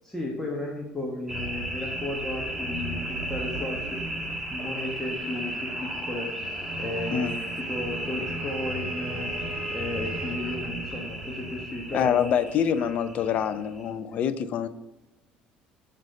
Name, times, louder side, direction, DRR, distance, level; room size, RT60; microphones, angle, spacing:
voice 1, 0.0-4.0 4.5-6.3 6.8-7.4 7.7-9.3 9.7-12.4, left 2 dB, 10° left, -3 dB, 1.2 m, -34 dB
sound 1, 1.3-13.9, right 1 dB, 10° right, 1.6 m, -34 dB
voice 2, 7.1-7.4 11.9-14.7, left 8 dB, 50° left, 12 dB, 0.5 m, -26 dB
Wind instrument woodwind instrument, 7.5-10.7, right 4 dB, 30° right, 1.4 m, -42 dB
6.4 x 4.0 x 6.3 m, 1.1 s
cardioid pair, 135°, 3 cm